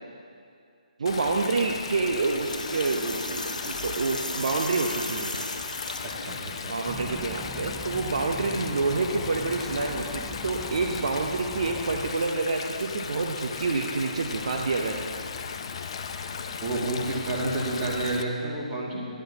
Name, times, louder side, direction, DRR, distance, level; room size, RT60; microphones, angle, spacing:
voice 1, 1.0-5.3 6.7-15.3, right 3 dB, 55° right, 2 dB, 0.8 m, -28 dB
Stream, 1.1-18.2, left 6 dB, 45° left, 0.6 m, -37 dB
sound 1, 2.0-6.4, left 1 dB, 90° left, 1.1 m, -36 dB
voice 2, 6.2-6.8 16.6-19.1, right 2 dB, 20° right, -5 dB, 2.4 m, -30 dB
sound 2, 6.9-12.1, left 2 dB, 5° left, 0.4 m, -41 dB
15.5 x 11.5 x 2.9 m, 2.3 s
figure-of-eight pair, 140°, 4 cm